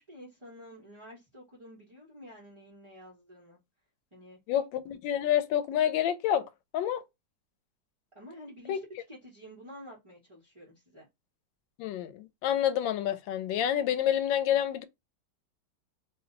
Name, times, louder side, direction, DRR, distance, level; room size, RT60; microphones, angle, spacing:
voice 1, 0.0-3.6 4.1-4.4 8.1-11.1, equal, 35° right, 0.4 m, -49 dB
voice 2, 4.5-6.5 6.7-7.0 8.7-8.8 11.8-14.8, left 10 dB, 90° left, 1.3 m, -28 dB
3.0 x 2.0 x 3.7 m
omnidirectional pair, 2.0 m